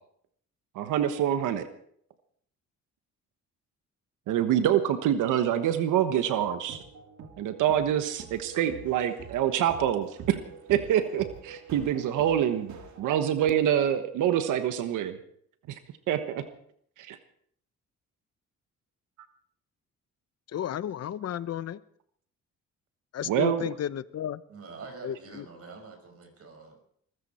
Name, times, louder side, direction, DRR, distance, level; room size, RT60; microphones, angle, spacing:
voice 1, 0.7-1.7 4.3-6.8 7.4-10.4 10.7-15.2 15.7-15.8 16.1-16.4 17.0-17.2 23.2-23.6, right 10 dB, 85° right, 9 dB, 1.3 m, -26 dB
sound 1, 6.4-13.0, right 5 dB, 70° right, 2.5 m, -46 dB
voice 2, 20.5-21.8 23.1-24.4 25.0-25.4, left 10 dB, 55° left, 16 dB, 0.9 m, -33 dB
voice 3, 24.5-26.8, right 4 dB, 50° right, 5 dB, 5.4 m, -45 dB
22.5 x 14.5 x 4.4 m, 0.65 s
cardioid pair, 90°, 30 cm